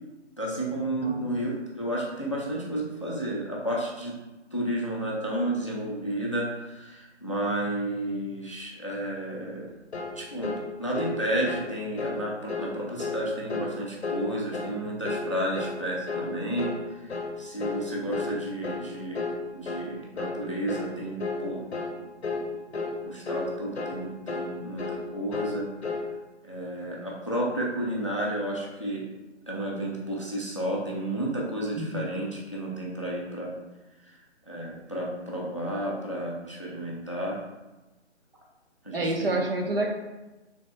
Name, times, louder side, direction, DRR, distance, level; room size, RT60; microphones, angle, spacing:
voice 1, 0.4-4.1 4.5-9.6 10.1-17.1 17.4-19.2 19.5-21.7 22.0-22.1 22.3-22.4 23.0-25.7 26.4-29.1 29.5-33.5 34.0-34.1 34.5-37.4 38.8-39.4, right 1 dB, 30° left, -3 dB, 0.4 m, -32 dB
sound 1, 9.9-10.2 10.4-10.6 10.9-11.2 11.5-11.7 12.0-12.2 12.5-12.7 13.0-13.2 13.5-13.7 14.0-14.3 14.5-14.8 15.0-15.3 15.6-15.8 16.1-16.3 16.6-16.8 17.1-17.3 17.6-17.8 18.1-18.4 18.6-18.9 19.1-19.4 19.7-19.9 20.2-20.4 20.7-20.9 21.2-21.4 21.7-22.0 22.2-22.5 22.7-23.0 23.3-23.5 23.8-24.0 24.3-24.5 24.8-25.0 25.3-25.6 25.8-26.1, left 4 dB, 65° left, 0.7 m, -32 dB
voice 2, 31.8-32.1 38.9-39.9, right 2 dB, 55° right, 1 dB, 0.5 m, -28 dB
3.4 x 3.1 x 2.9 m, 1.1 s
figure-of-eight pair, 155°, 35 cm